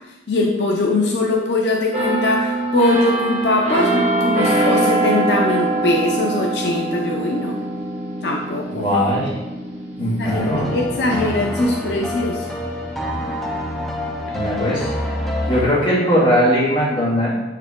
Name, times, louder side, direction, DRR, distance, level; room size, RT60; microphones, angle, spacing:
voice 1, 0.3-7.7 8.2-8.9 10.2-12.5, left 2 dB, 70° left, 0 dB, 0.6 m, -21 dB
sound 1, 1.9-13.5 13.9-14.1, right 2 dB, 35° right, 1.6 m, -24 dB
voice 2, 8.7-9.4 10.0-10.7 14.3-14.9 15.5-17.3, equal, 25° left, -8 dB, 2.1 m, -19 dB
sound 2, 10.2-15.7, left 1 dB, ahead, 0.7 m, -26 dB
6.6 x 4.7 x 3.6 m, 1.1 s
head